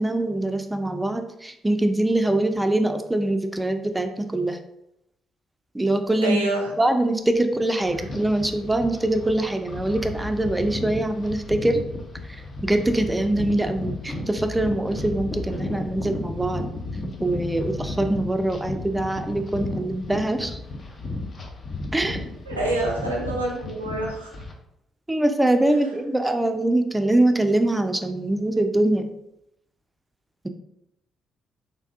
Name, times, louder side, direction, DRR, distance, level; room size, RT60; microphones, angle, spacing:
voice 1, 0.0-4.6 5.7-6.4 6.8-11.8 12.6-16.7 17.2-20.6 21.9-22.2 25.1-29.1, right 1 dB, 15° right, 7 dB, 0.4 m, -23 dB
voice 2, 6.2-6.7 7.3-7.4 22.5-24.3, right 1 dB, 85° right, -2 dB, 0.5 m, -27 dB
sound 1, 7.8-24.5, left 2 dB, 40° left, 0.5 m, -34 dB
3.4 x 2.6 x 2.4 m, 0.84 s
figure-of-eight pair, 40°, 0 cm